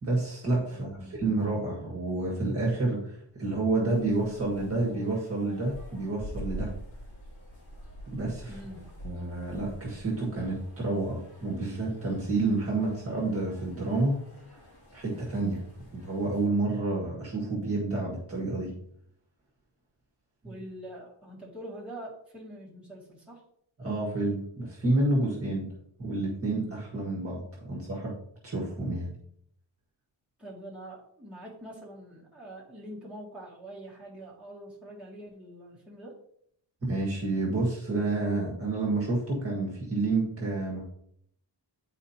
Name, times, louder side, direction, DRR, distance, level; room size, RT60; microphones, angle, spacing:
voice 1, 0.0-6.7 8.1-8.5 9.0-14.2 14.9-15.7 15.9-18.7 23.8-25.7 26.0-28.1 28.4-29.1 36.8-40.8, right 2 dB, 30° right, -4 dB, 1.6 m, -29 dB
voice 2, 0.7-1.2 8.5-8.9 20.4-23.4 30.4-36.2, right 1 dB, ahead, -8 dB, 2.1 m, -44 dB
sound 1, 3.9-16.5, equal, 40° left, 2.8 m, -46 dB
9.8 x 4.4 x 2.8 m, 0.70 s
wide cardioid pair, 180°, 47 cm